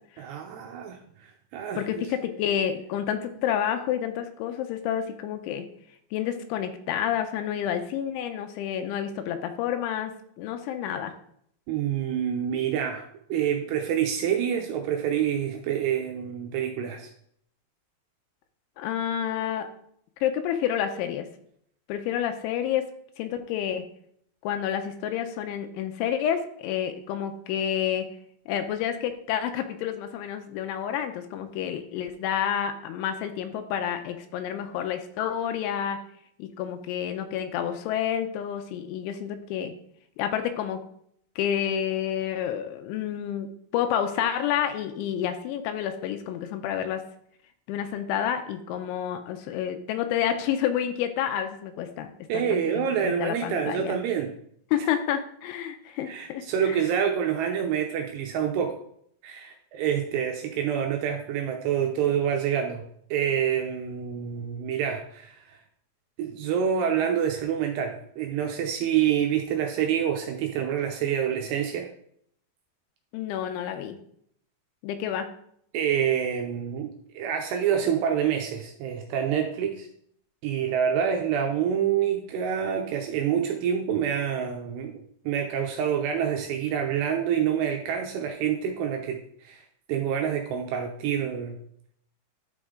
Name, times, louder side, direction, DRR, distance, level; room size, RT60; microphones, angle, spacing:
voice 1, 0.2-1.9 11.7-17.1 52.3-54.3 54.8-54.9 56.1-58.8 59.2-62.8 63.1-65.6 66.2-71.9 75.7-79.9 80.4-91.6, right 8 dB, 80° right, 3 dB, 2.5 m, -27 dB
voice 2, 1.8-5.6 6.1-11.1 18.8-19.7 20.2-21.3 21.9-22.9 23.2-23.9 24.4-28.1 28.5-36.0 36.4-39.7 40.2-40.8 41.4-47.0 47.7-54.0 54.7-56.8 73.1-74.0 74.8-75.3, left 9 dB, 85° left, 7 dB, 3.0 m, -29 dB
11.5 x 5.4 x 3.7 m, 0.67 s
omnidirectional pair, 5.5 m